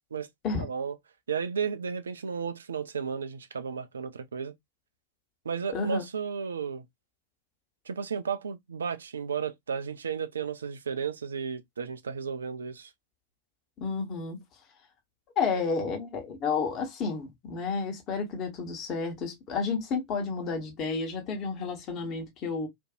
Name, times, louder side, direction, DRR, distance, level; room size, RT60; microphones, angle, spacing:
voice 1, 0.6-1.0 1.3-4.5 5.5-6.9 7.9-12.9, right 6 dB, 70° right, 0.4 m, -33 dB
voice 2, 5.7-6.0 13.8-14.4 15.4-22.7, left 4 dB, 35° left, 1.2 m, -31 dB
2.6 x 2.5 x 2.4 m
figure-of-eight pair, 90°, 0 cm